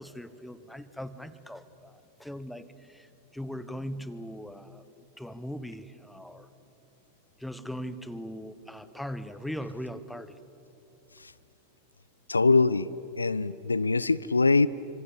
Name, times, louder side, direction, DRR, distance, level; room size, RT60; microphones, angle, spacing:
voice 1, 0.0-3.1 3.3-4.8 5.2-6.5 7.4-10.3, equal, ahead, 13 dB, 1.2 m, -39 dB
voice 2, 12.3-12.9 13.2-14.7, left 3 dB, 80° left, 19 dB, 0.5 m, -23 dB
26.5 x 25.5 x 8.5 m, 2.9 s
figure-of-eight pair, 90°, 0 cm